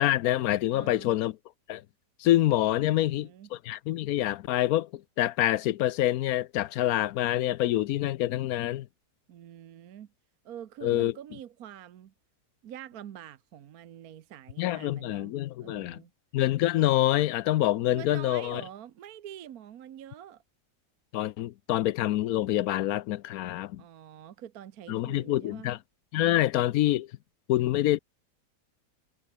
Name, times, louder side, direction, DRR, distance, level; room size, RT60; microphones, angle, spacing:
voice 1, 0.0-1.3 1.7-1.8 2.2-8.9 10.8-11.1 14.6-16.0 16.3-18.6 21.1-23.8 24.9-25.8 26.1-27.1 27.5-28.0, left 14 dB, 70° left, 1.0 m, -26 dB
voice 2, 0.7-1.1 2.9-3.5 9.3-10.1 10.4-12.1 12.6-16.1 17.9-20.4 23.8-25.7, right 10 dB, 65° right, 1.3 m, -45 dB
omnidirectional pair, 1.8 m